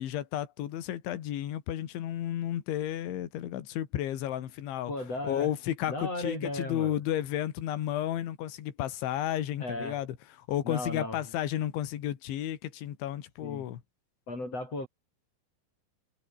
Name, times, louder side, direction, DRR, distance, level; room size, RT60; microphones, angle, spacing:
voice 1, 0.0-4.9 5.2-10.2 10.5-13.8, left 12 dB, 75° left, 4.5 m, -32 dB
voice 2, 4.9-5.5 5.9-7.0 9.6-10.0 10.6-11.2 13.4-13.7 14.3-14.9, left 2 dB, 30° left, 9.0 m, -35 dB
omnidirectional pair, 5.5 m